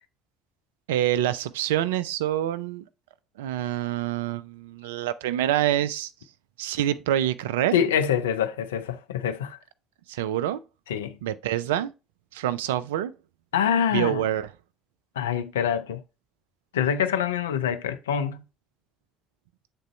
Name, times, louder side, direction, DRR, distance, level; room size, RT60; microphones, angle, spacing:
voice 1, 0.9-2.8 3.4-6.1 6.6-7.7 10.1-10.6 11.2-11.9 12.3-13.1 13.9-14.5, right 12 dB, 75° right, 0.3 m, -26 dB
voice 2, 7.7-9.6 10.9-11.2 13.5-14.3 15.2-16.0 16.7-18.4, left 8 dB, 80° left, 0.4 m, -25 dB
8.0 x 3.8 x 3.1 m
figure-of-eight pair, 50°, 0 cm